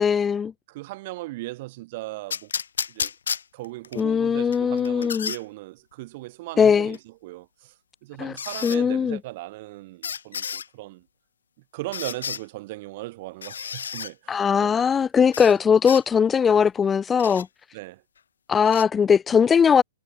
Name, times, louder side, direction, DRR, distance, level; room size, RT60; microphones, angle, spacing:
voice 1, 0.0-0.5 4.0-5.3 6.6-7.0 8.2-8.3 8.6-9.2 14.3-17.5 18.5-19.8, left 7 dB, 10° left, 0.3 m, -20 dB
voice 2, 0.7-2.5 2.9-3.1 3.5-7.7 8.0-11.1 11.7-14.8 15.4-15.6 17.7-18.0, right 19 dB, 35° right, 4.0 m, -38 dB
sound 1, 2.3-4.0 4.5-5.4 6.9-7.0 8.4-8.8 10.0-10.7 11.9-12.4 13.4-14.1 15.3-15.5 15.9-16.0 17.2-17.4 18.7-18.8, left 7 dB, 90° left, 0.5 m, -31 dB
hypercardioid pair, 170°, 0 cm